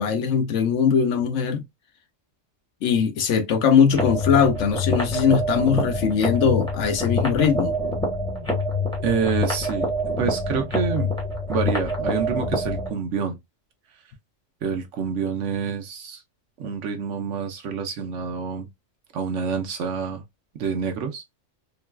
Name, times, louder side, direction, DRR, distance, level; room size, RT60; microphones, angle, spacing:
voice 1, 0.0-1.6 2.8-7.8, left 6 dB, 70° left, 0.9 m, -20 dB
sound 1, 3.9-12.9, left 1 dB, 5° left, 1.1 m, -26 dB
voice 2, 9.0-9.9 10.2-11.1 11.5-13.4 14.6-16.2 16.6-18.7 19.1-20.2 20.6-21.2, right 6 dB, 70° right, 1.0 m, -27 dB
3.8 x 2.3 x 2.2 m
omnidirectional pair, 1.3 m